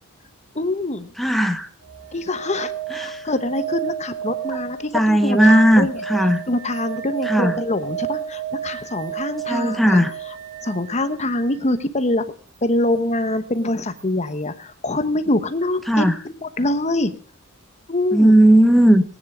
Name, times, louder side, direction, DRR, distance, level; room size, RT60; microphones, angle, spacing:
voice 1, 0.5-1.1 2.1-6.0 6.5-10.0 10.6-12.2 12.6-17.1 17.9-18.3, left 2 dB, 30° left, 10 dB, 1.1 m, -24 dB
voice 2, 1.2-1.7 2.9-3.2 4.9-6.4 7.3-7.5 9.5-10.1 15.9-16.1 18.1-19.0, right 1 dB, ahead, 7 dB, 1.2 m, -16 dB
sound 1, 1.8-11.6 14.0-14.1, right 11 dB, 75° right, 3.0 m, -31 dB
18.5 x 9.7 x 5.0 m, 0.39 s
head